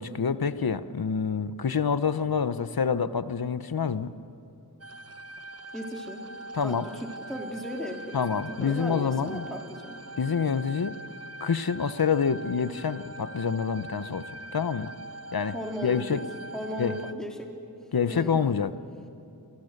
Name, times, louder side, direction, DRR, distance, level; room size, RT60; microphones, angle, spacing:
voice 1, 0.0-4.1 6.5-6.8 8.1-9.5 10.2-11.0 11.4-14.3 14.5-14.9 15.3-15.5 15.8-16.2 16.8-17.0 17.9-18.7, left 6 dB, 65° left, 13 dB, 0.9 m, -27 dB
sound 1, 4.8-17.1, right 2 dB, 40° right, 0.8 m, -42 dB
voice 2, 5.7-6.3 6.6-10.0 15.5-16.2 16.5-17.5 18.1-18.4, equal, ahead, 1 dB, 3.3 m, -37 dB
28.0 x 24.5 x 6.6 m, 2.7 s
wide cardioid pair, 55°, 39 cm